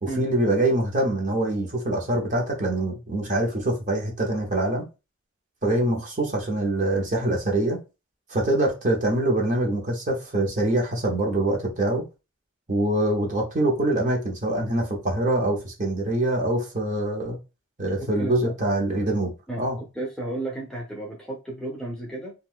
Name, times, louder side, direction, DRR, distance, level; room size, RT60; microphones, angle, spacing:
voice 1, 0.0-4.9 5.6-7.8 8.3-12.1 12.7-17.4 17.8-19.3 19.6-19.8, right 1 dB, 35° right, 0.8 m, -24 dB
voice 2, 18.0-18.6 19.5-19.7 19.9-22.3, right 1 dB, 5° left, 0.6 m, -33 dB
2.6 x 2.3 x 3.6 m
head